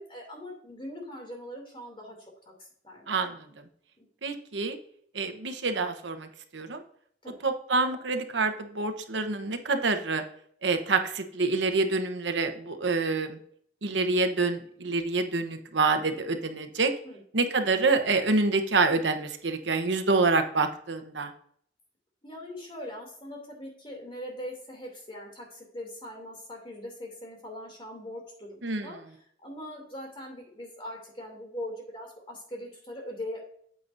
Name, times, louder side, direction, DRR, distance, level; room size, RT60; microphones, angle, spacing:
voice 1, 0.0-2.1 2.5-3.2 4.0-4.1 7.2-7.3 17.0-17.2 22.2-29.0 29.4-33.4, left 1 dB, 30° left, 1 dB, 2.8 m, -41 dB
voice 2, 3.1-3.5 4.2-4.8 5.1-6.8 7.4-10.2 10.6-13.4 13.8-16.9 17.3-21.3 28.6-28.9, right 3 dB, 90° right, 7 dB, 1.0 m, -27 dB
8.9 x 7.7 x 2.6 m, 0.63 s
head